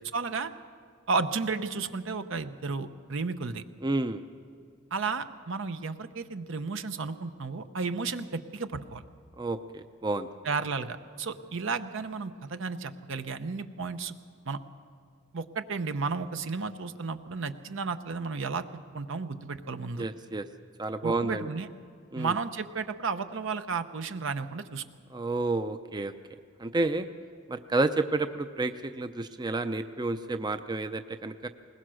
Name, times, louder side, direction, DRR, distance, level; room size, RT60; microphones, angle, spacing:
voice 1, 0.1-0.5 1.1-3.6 4.9-9.0 10.4-14.2 14.5-14.6 15.3-18.7 18.9-20.1 21.0-21.7 22.1-24.8, right 4 dB, 65° right, 10 dB, 0.8 m, -33 dB
voice 2, 3.8-4.2 9.4-10.3 20.0-20.5 20.8-21.5 22.1-22.3 25.1-26.1 26.6-27.1 27.5-31.5, right 2 dB, 20° right, 9 dB, 0.5 m, -30 dB
21.0 x 20.0 x 6.3 m, 2.2 s
head